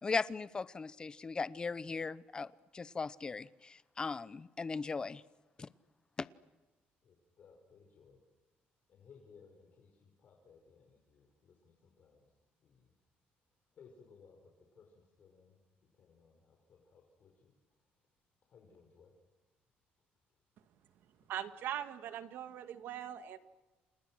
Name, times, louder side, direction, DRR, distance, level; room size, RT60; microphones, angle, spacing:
voice 1, 0.0-5.2 5.6-5.7 6.2-6.3, left 4 dB, 25° left, 17 dB, 0.8 m, -38 dB
voice 2, 7.0-8.2 8.9-12.9 13.7-18.1 18.5-19.1, left 5 dB, 50° left, 1 dB, 5.4 m, -62 dB
voice 3, 21.3-23.4, right 10 dB, 70° right, 9 dB, 1.9 m, -41 dB
30.0 x 27.5 x 6.3 m, 1.2 s
cardioid pair, 140°, 4 cm